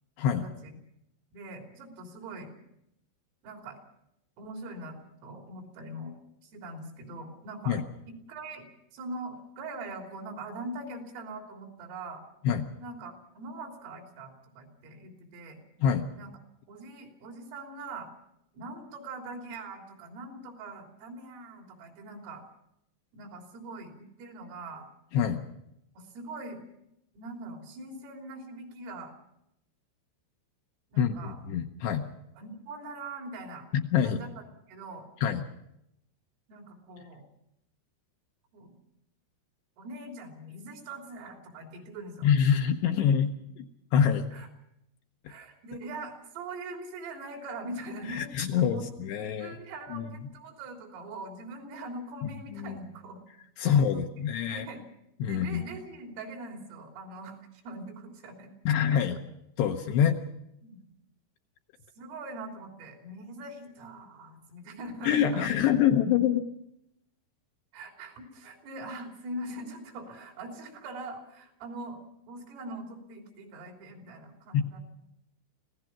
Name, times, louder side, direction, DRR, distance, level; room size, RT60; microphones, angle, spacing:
voice 1, 0.3-0.7 1.3-2.5 3.4-3.8 4.4-6.1 6.4-7.8 8.1-12.2 12.8-15.6 16.1-16.3 16.7-18.1 18.5-22.4 23.1-24.9 26.0-26.6 27.1-29.1 30.9-31.4 32.4-33.7 34.0-35.1 36.5-37.2 38.5-38.7 39.8-42.3 44.3-44.5 45.3-48.8 49.4-53.2 53.6-54.8 55.2-58.5 58.9-59.0 60.6-60.9 62.0-65.5 65.9-66.0 67.7-72.0 72.3-74.8, right 2 dB, 85° right, 2 dB, 6.0 m, -42 dB
voice 2, 31.0-32.0 33.7-34.2 35.2-35.4 42.2-43.6 43.9-44.3 48.1-49.5 49.9-50.0 52.6-52.8 53.6-54.7 55.2-55.6 58.7-59.2 59.6-60.2 65.0-66.4 74.5-74.6, left 8 dB, 75° left, 5 dB, 2.6 m, -25 dB
26.0 x 17.0 x 6.0 m, 0.79 s
omnidirectional pair, 5.7 m